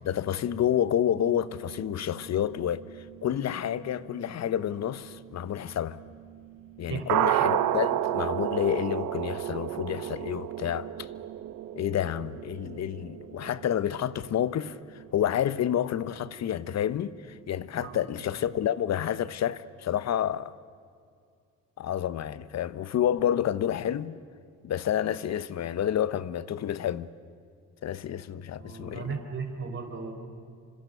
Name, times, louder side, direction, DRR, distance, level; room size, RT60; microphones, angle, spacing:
voice 1, 0.0-6.0 6.8-11.1 11.7-20.5 21.8-24.2 24.6-27.1 27.8-29.2, left 10 dB, 60° left, 1.0 m, -29 dB
sound 1, 1.2-16.0 16.3-16.4 16.7-16.8 17.2-17.3 17.6-17.7 17.9-18.0, right 12 dB, 90° right, 1.2 m, -33 dB
voice 2, 6.9-7.3 17.8-18.0 28.6-30.1, right 5 dB, 40° right, 4.4 m, -36 dB
29.5 x 25.5 x 6.9 m
cardioid pair, 90°, 30 cm